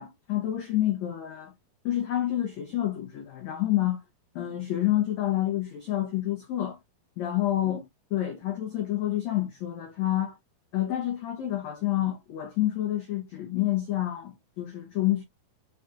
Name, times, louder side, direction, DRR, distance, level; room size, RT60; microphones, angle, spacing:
voice 1, 0.0-1.5 1.8-4.0 4.3-6.8 7.2-7.8 8.1-10.4 10.7-15.2, left 13 dB, 85° left, 1.5 m, -28 dB
5.6 x 3.7 x 2.5 m
omnidirectional pair, 4.4 m